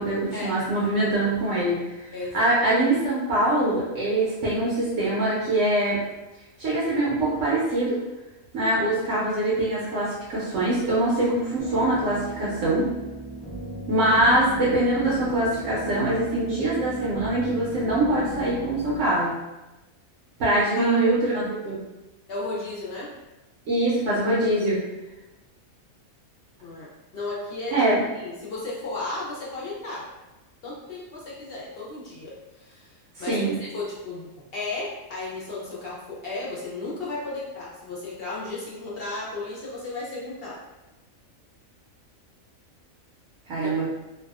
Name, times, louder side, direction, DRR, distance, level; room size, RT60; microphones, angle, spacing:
voice 1, 0.0-2.1 2.3-6.0 6.6-8.0 8.5-12.9 13.9-19.3 20.4-21.8 23.7-24.8 27.7-28.0 33.3-33.6 43.5-43.9, right 1 dB, 70° right, -7 dB, 1.0 m, -23 dB
voice 2, 2.1-2.5 20.8-21.0 22.3-23.1 26.6-27.8 28.1-30.0 30.6-40.6 43.5-43.7, left 2 dB, 60° left, -5 dB, 0.7 m, -34 dB
sound 1, 11.6-19.0, right 2 dB, 10° right, 0.3 m, -36 dB
2.6 x 2.3 x 2.3 m, 1.0 s
omnidirectional pair, 1.4 m